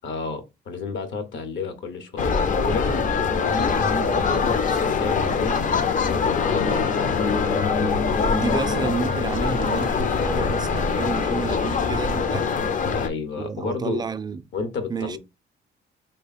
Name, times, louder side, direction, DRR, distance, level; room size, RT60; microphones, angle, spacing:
voice 1, 0.0-3.0 3.3-5.6 6.0-6.9 12.9-14.0 14.5-15.2, left 4 dB, 70° left, 0.9 m, -31 dB
sound 1, 2.2-13.1, left 5 dB, 40° left, 0.5 m, -23 dB
sound 2, 5.2-12.1, left 4 dB, 85° left, 0.6 m, -32 dB
voice 2, 8.2-12.5 13.4-14.4 14.9-15.2, right 5 dB, 20° right, 0.3 m, -30 dB
3.2 x 2.2 x 4.0 m
cardioid pair, 90°, 20 cm